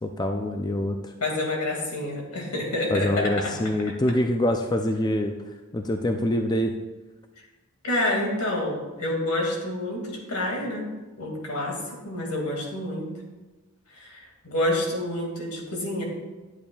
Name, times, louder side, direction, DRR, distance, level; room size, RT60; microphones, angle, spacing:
voice 1, 0.0-1.1 2.9-5.3 5.7-6.7, left 1 dB, 20° left, 5 dB, 0.4 m, -25 dB
voice 2, 1.2-3.5 7.8-10.9 11.2-13.1 14.0-16.0, left 1 dB, 85° left, 0 dB, 2.2 m, -28 dB
11.0 x 8.6 x 2.3 m, 1.2 s
head